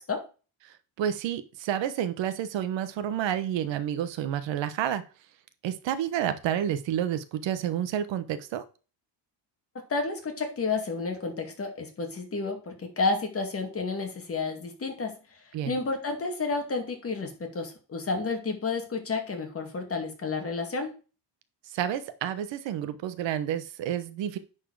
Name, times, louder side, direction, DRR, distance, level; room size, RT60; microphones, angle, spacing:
voice 1, 0.6-5.0 5.6-8.6 15.5-15.8 21.7-24.4, right 10 dB, 90° right, 12 dB, 1.2 m, -30 dB
voice 2, 9.9-15.1 15.7-20.9, left 4 dB, 30° left, 4 dB, 2.2 m, -31 dB
10.0 x 4.7 x 4.7 m, 0.34 s
cardioid pair, 145°, 43 cm